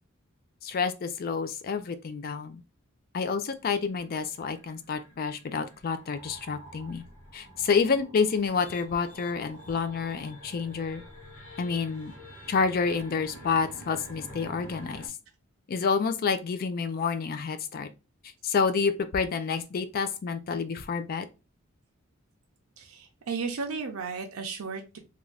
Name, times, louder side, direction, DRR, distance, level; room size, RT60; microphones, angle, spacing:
voice 1, 0.6-2.6 3.1-7.0 7.3-11.0 11.6-12.1 12.5-15.1 15.7-17.9 18.4-21.3, left 5 dB, 45° left, 0.3 m, -29 dB
sound 1, 3.5-15.1, equal, 80° left, 0.8 m, -48 dB
voice 2, 22.8-25.0, right 5 dB, 85° right, 0.5 m, -34 dB
2.5 x 2.3 x 3.2 m
head